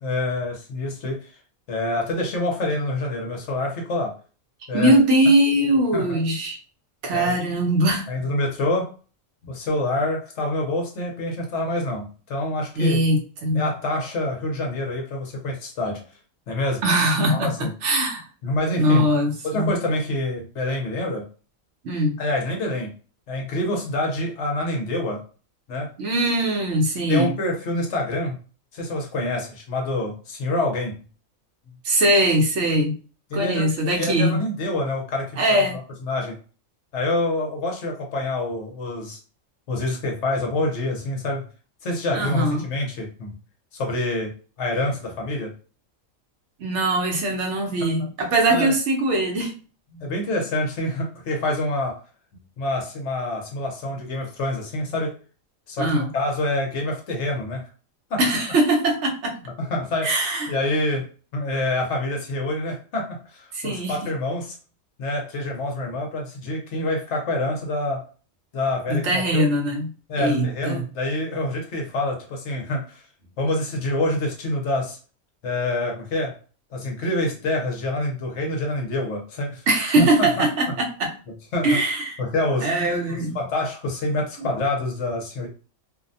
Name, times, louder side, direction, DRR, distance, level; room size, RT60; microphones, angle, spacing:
voice 1, 0.0-1.3 1.7-4.1 4.7-4.9 5.9-6.2 7.1-7.3 8.1-9.0 9.4-13.0 13.5-16.0 16.5-16.8 17.3-17.7 18.4-19.1 19.4-21.3 22.2-22.9 23.3-25.2 25.7-25.9 27.1-28.4 28.7-31.0 33.3-35.6 36.0-36.4 36.9-39.2 39.7-41.5 41.8-43.3 43.7-45.5 47.8-48.1 48.5-48.7 49.9-52.0 52.6-55.2 55.7-57.6 58.1-58.2 59.6-60.2 60.5-64.6 65.0-68.1 68.5-69.4 70.1-73.0 73.4-75.0 75.4-76.4 76.7-79.7 80.0-80.5 81.5-81.8 82.2-82.7 83.1-85.5, left 1 dB, 65° left, 1 dB, 0.9 m, -26 dB
voice 2, 4.7-6.6 7.0-8.1 12.8-13.7 16.8-18.2 18.8-19.7 21.8-22.2 26.0-27.3 31.8-33.0 33.3-34.4 35.4-35.8 42.1-42.6 46.6-49.6 55.8-56.1 58.2-59.4 60.0-60.5 63.5-64.0 68.9-69.9 70.2-70.9 79.7-81.1 81.6-82.2 82.6-83.4, right 1 dB, 65° right, 2 dB, 0.9 m, -21 dB
2.6 x 2.1 x 2.6 m, 0.36 s
omnidirectional pair, 1.4 m